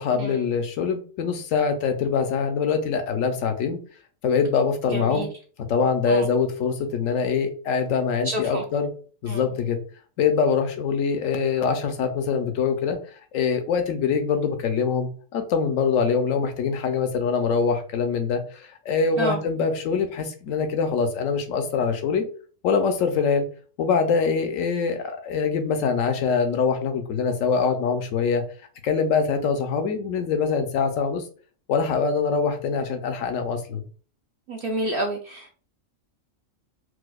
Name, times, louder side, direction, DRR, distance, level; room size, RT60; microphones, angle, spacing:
voice 1, 0.0-3.8 4.2-5.3 5.7-8.9 9.2-9.8 10.2-13.0 13.3-22.3 22.6-23.5 23.8-28.4 28.8-31.2 31.7-33.8, left 5 dB, 75° left, 7 dB, 0.9 m, -24 dB
voice 2, 4.9-5.3 6.1-6.3 8.2-8.6 9.3-9.5 19.2-19.4 34.5-35.6, right 1 dB, 70° right, 1 dB, 0.5 m, -29 dB
4.7 x 2.0 x 2.2 m, 0.41 s
omnidirectional pair, 1.4 m